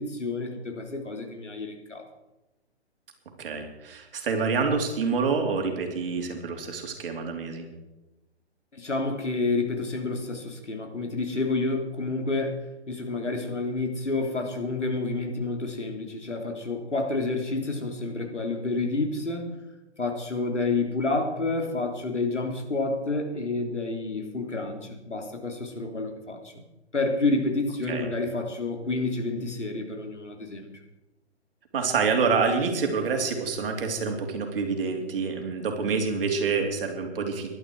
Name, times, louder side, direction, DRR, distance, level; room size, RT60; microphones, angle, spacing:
voice 1, 0.0-2.1 8.7-12.5 12.9-19.5 20.0-26.5 26.9-30.7, left 3 dB, 85° left, 3 dB, 3.4 m, -29 dB
voice 2, 3.4-7.7 27.9-28.1 31.7-37.5, right 5 dB, 50° right, 3 dB, 3.4 m, -27 dB
18.0 x 12.0 x 4.8 m, 1.0 s
figure-of-eight pair, 130°, 35 cm